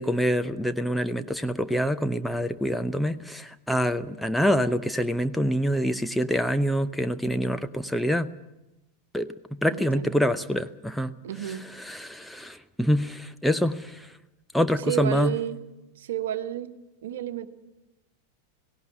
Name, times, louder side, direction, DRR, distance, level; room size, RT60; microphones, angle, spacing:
voice 1, 0.0-8.3 9.1-11.1 11.5-14.1 14.5-15.4, equal, ahead, 9 dB, 0.7 m, -26 dB
voice 2, 9.7-10.2 11.2-11.6 14.9-15.6 16.0-16.7 17.0-17.5, right 12 dB, 60° right, 10 dB, 1.3 m, -31 dB
17.5 x 17.5 x 9.9 m, 0.98 s
figure-of-eight pair, 90°, 0 cm